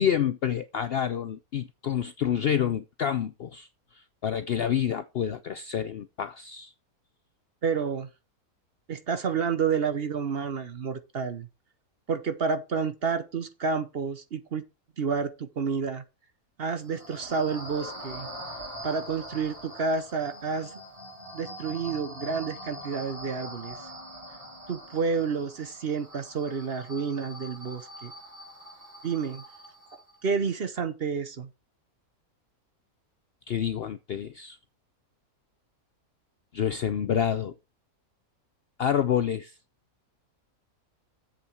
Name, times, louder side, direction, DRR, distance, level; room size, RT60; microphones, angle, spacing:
voice 1, 0.0-3.7 4.2-6.7 33.5-34.6 36.5-37.5 38.8-39.5, left 9 dB, 65° left, 0.6 m, -28 dB
voice 2, 7.6-8.1 8.9-11.5 12.1-14.6 15.0-16.0 16.6-18.3 18.8-20.7 21.3-23.8 24.7-28.1 29.0-29.4 30.2-31.5, right 5 dB, 50° right, 0.9 m, -30 dB
sound 1, 16.7-30.2, equal, 25° right, 3.1 m, -43 dB
7.8 x 6.9 x 4.6 m
omnidirectional pair, 1.6 m